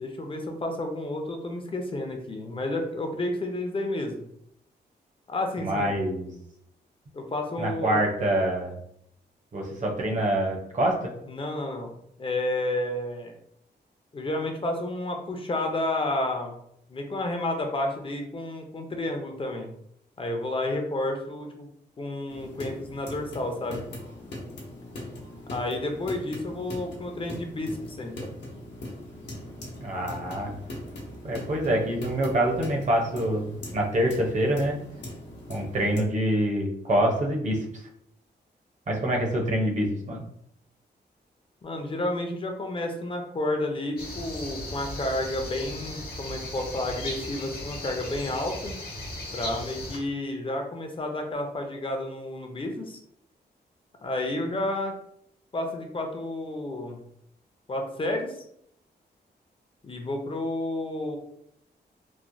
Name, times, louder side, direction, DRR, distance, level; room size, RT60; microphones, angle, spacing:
voice 1, 0.0-4.2 5.3-5.9 7.1-8.0 11.3-11.9 12.2-13.4 14.1-16.5 16.9-19.7 20.2-21.7 22.0-23.8 25.5-28.3 41.6-48.7 49.3-53.0 54.0-54.9 55.5-57.0 57.7-58.4 59.8-61.2, left 1 dB, 30° left, 3 dB, 0.5 m, -31 dB
voice 2, 5.6-6.3 7.6-8.7 9.5-11.1 29.8-30.5 31.2-34.8 35.5-37.8 38.9-40.2, right 1 dB, 45° right, 0 dB, 0.7 m, -26 dB
sound 1, 22.3-36.0, left 1 dB, 85° left, 0.9 m, -40 dB
sound 2, 44.0-50.0, left 1 dB, 60° left, 0.8 m, -37 dB
3.1 x 2.1 x 2.5 m, 0.72 s
wide cardioid pair, 115°, 18 cm